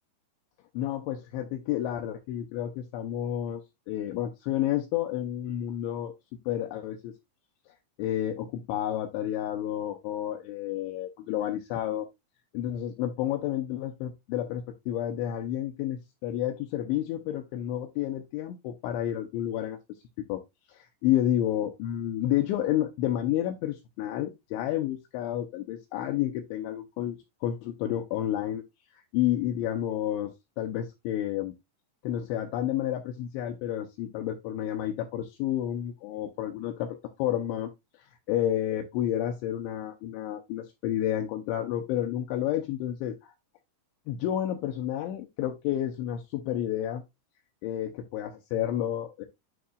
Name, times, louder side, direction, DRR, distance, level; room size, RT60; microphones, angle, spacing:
voice 1, 0.7-3.6 3.9-6.1 6.5-7.1 8.0-12.1 12.5-20.4 20.7-28.6 28.9-31.6 32.0-37.7 38.0-43.3 44.1-47.0 47.6-49.3, left 12 dB, 80° left, 2.7 m, -30 dB
11.0 x 3.9 x 2.3 m
omnidirectional pair, 5.9 m